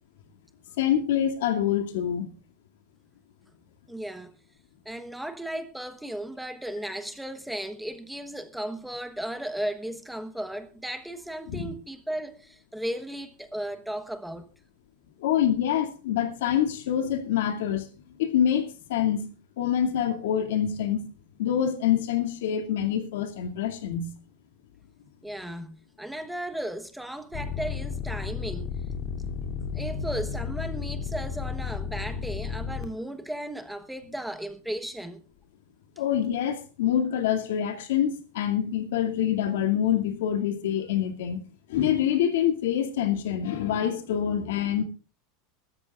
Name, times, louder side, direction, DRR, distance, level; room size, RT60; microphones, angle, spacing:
voice 1, 0.8-2.3 11.5-11.6 15.2-17.9 18.2-19.3 19.6-21.1 21.4-24.1 36.0-41.4 41.7-44.8, left 9 dB, 85° left, 2.4 m, -26 dB
voice 2, 3.9-4.3 4.8-14.5 25.2-28.7 29.7-35.2, right 1 dB, ahead, 1.2 m, -35 dB
sound 1, 27.3-32.8, left 6 dB, 45° left, 2.8 m, -33 dB
23.5 x 13.5 x 2.4 m
supercardioid pair, 170°, 0 cm